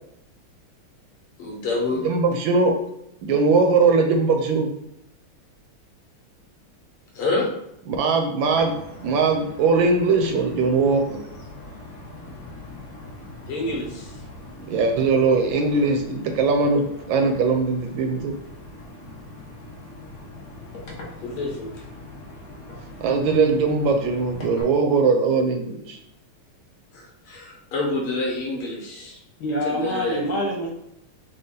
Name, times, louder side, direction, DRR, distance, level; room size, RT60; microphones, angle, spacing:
voice 1, 1.4-2.1 7.1-7.5 13.5-14.1 21.2-21.8 26.9-29.2 29.6-30.4, left 3 dB, 90° left, -2 dB, 2.0 m, -28 dB
voice 2, 2.0-2.8 3.2-4.7 7.9-11.2 14.6-18.3 23.0-26.0, right 4 dB, 75° right, 4 dB, 1.2 m, -20 dB
sound 1, 8.4-24.6, left 2 dB, 50° left, 1.2 m, -41 dB
voice 3, 29.4-30.7, equal, 70° left, -1 dB, 1.0 m, -25 dB
4.8 x 2.3 x 3.8 m, 0.80 s
omnidirectional pair, 2.4 m